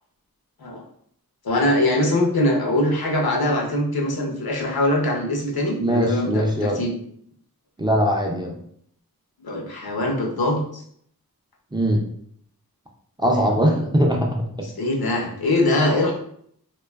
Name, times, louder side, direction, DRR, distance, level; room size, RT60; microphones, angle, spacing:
voice 1, 1.4-6.9 9.4-10.8 13.5-13.8 14.6-16.1, left 1 dB, 75° left, -1 dB, 0.6 m, -22 dB
voice 2, 5.8-6.8 7.8-8.5 11.7-12.1 13.2-14.7, equal, 15° right, 0 dB, 0.3 m, -21 dB
2.5 x 2.2 x 2.3 m, 0.66 s
wide cardioid pair, 60°, 37 cm